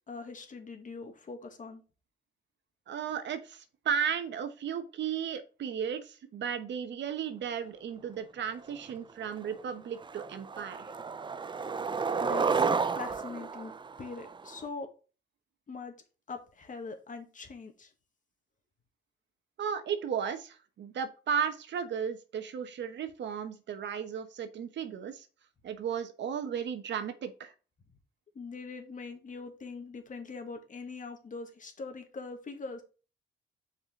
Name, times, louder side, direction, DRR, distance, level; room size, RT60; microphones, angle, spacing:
voice 1, 0.1-1.8 12.2-13.7 14.0-14.9 15.7-15.9 16.3-17.9 28.4-32.8, left 4 dB, 40° left, 5 dB, 1.9 m, -42 dB
voice 2, 2.9-10.9 19.6-25.3 25.6-27.5, right 7 dB, 65° right, 9 dB, 1.2 m, -35 dB
Skateboard, 8.9-9.0 9.4-9.7 10.0-14.7, right 5 dB, 25° right, 0.5 m, -32 dB
7.2 x 5.0 x 3.8 m, 0.35 s
cardioid pair, 90°, 20 cm